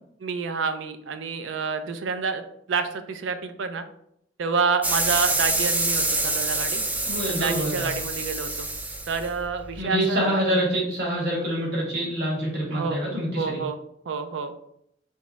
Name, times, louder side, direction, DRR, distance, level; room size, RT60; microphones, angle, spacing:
voice 1, 0.2-2.4 2.7-3.8 4.4-6.8 7.3-8.7 9.1-10.4 12.7-13.0 13.4-13.8 14.1-14.5, right 5 dB, 85° right, 9 dB, 0.5 m, -28 dB
sound 1, 4.8-9.8, right 2 dB, 10° right, 0.3 m, -26 dB
voice 2, 7.1-7.9 9.8-13.6, equal, 60° right, -3 dB, 1.7 m, -26 dB
3.5 x 3.1 x 3.9 m, 0.72 s
head